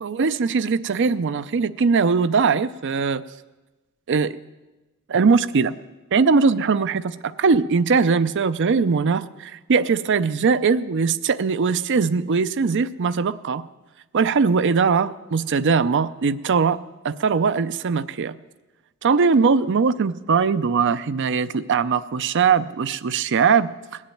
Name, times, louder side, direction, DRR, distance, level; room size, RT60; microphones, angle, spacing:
voice 1, 0.0-3.2 4.1-4.4 5.1-5.7 6.1-13.6 14.1-16.8 17.0-18.4 19.0-23.7, right 5 dB, 60° right, 15 dB, 0.5 m, -20 dB
20.0 x 7.3 x 9.1 m, 1.1 s
head